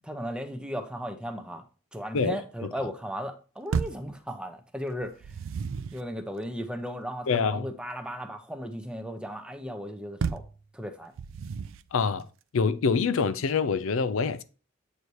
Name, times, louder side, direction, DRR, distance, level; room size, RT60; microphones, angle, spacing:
voice 1, 0.0-1.6 1.9-5.4 5.9-10.4 10.7-11.1, equal, 5° right, 0.6 m, -36 dB
voice 2, 2.1-2.7 7.3-7.7 11.9-12.3 12.5-14.4, left 5 dB, 75° left, 0.5 m, -26 dB
sound 1, 3.7-4.1 5.0-6.1 10.2-10.6 11.2-11.9, right 5 dB, 70° right, 0.4 m, -32 dB
8.0 x 2.8 x 4.6 m
head